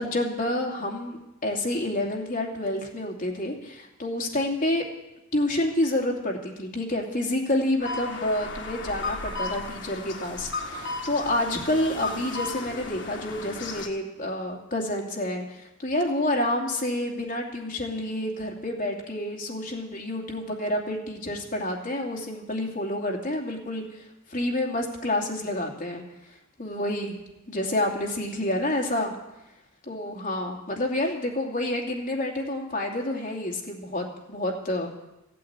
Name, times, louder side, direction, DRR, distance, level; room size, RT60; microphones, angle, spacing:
voice 1, 0.0-4.8 5.3-26.0 26.6-27.1 27.5-29.1 29.9-34.9, left 1 dB, 45° left, 0 dB, 2.7 m, -28 dB
sound 1, 7.8-13.9, left 3 dB, 60° left, 1.7 m, -35 dB
15.0 x 8.6 x 8.7 m, 0.95 s
head